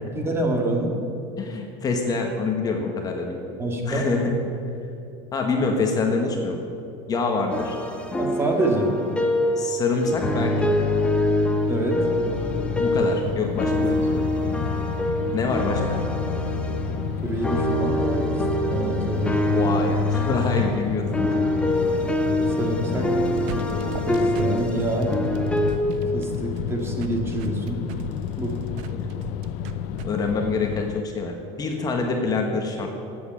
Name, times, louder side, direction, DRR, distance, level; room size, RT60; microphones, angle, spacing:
voice 1, 0.1-1.0 3.6-4.1 8.2-9.0 11.7-12.1 13.8-13.9 15.7-15.9 17.2-18.4 18.7-19.4 22.3-23.1 23.7-25.1 26.1-27.8 28.4-28.6, right 2 dB, 15° right, 1 dB, 2.0 m, -27 dB
voice 2, 1.4-3.4 3.8-4.3 5.3-6.7 7.1-7.8 9.6-10.8 12.8-13.7 14.0-14.2 15.3-16.0 19.5-21.5 28.9-29.1 30.0-32.9, left 4 dB, 25° left, 2 dB, 1.4 m, -26 dB
sound 1, 7.5-13.3 13.6-25.8, left 1 dB, 10° left, 1.2 m, -25 dB
sound 2, 12.3-31.0, left 9 dB, 55° left, 0.5 m, -31 dB
sound 3, 23.3-30.1, right 8 dB, 65° right, 0.9 m, -38 dB
13.5 x 8.7 x 8.7 m, 2.7 s
cardioid pair, 150°, 14 cm